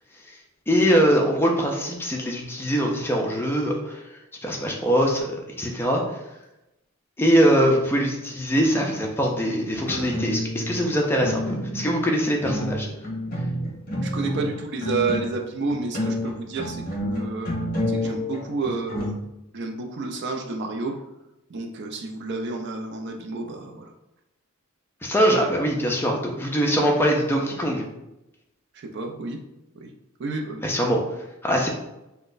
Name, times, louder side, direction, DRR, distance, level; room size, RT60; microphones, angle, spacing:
voice 1, 0.7-4.0 4.4-5.2 5.6-6.0 7.2-12.9 25.0-27.9 30.6-31.0 31.4-31.7, equal, 10° left, 0 dB, 0.4 m, -22 dB
sound 1, 9.7-10.8 11.2-12.0 12.4-15.4 15.7-19.1, left 1 dB, 45° left, 0.9 m, -29 dB
voice 2, 14.0-17.5 17.9-19.2 19.5-21.0 21.5-23.9 28.7-29.4 29.8-29.9 30.2-30.7, right 3 dB, 55° right, 3 dB, 0.4 m, -30 dB
3.8 x 2.1 x 2.5 m, 0.92 s
head